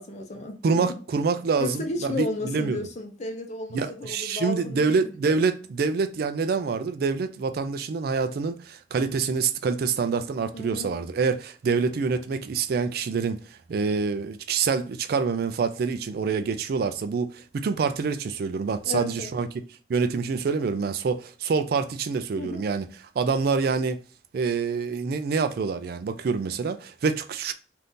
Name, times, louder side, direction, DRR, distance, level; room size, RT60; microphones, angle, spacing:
voice 1, 0.0-0.9 1.6-5.1 10.5-11.0 18.8-19.3 22.3-22.7, left 2 dB, 40° left, 0.6 m, -33 dB
voice 2, 0.6-2.8 3.7-19.5 19.9-22.9 23.2-24.0 24.3-27.5, right 5 dB, 55° right, 0.3 m, -26 dB
2.7 x 2.5 x 3.4 m
head